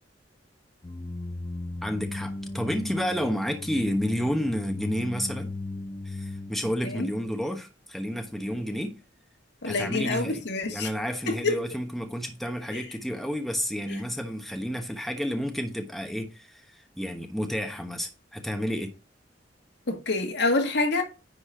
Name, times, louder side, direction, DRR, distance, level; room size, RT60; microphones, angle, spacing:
sound 1, 0.8-6.6, left 2 dB, 25° left, 0.5 m, -36 dB
voice 1, 1.8-5.5 6.0-9.0 9.6-10.4 10.7-18.9, equal, ahead, 1.0 m, -30 dB
voice 2, 9.6-10.9 11.3-11.6 12.7-12.8 13.9-14.0 19.9-21.0, left 3 dB, 65° left, 2.0 m, -27 dB
10.0 x 4.2 x 4.9 m
head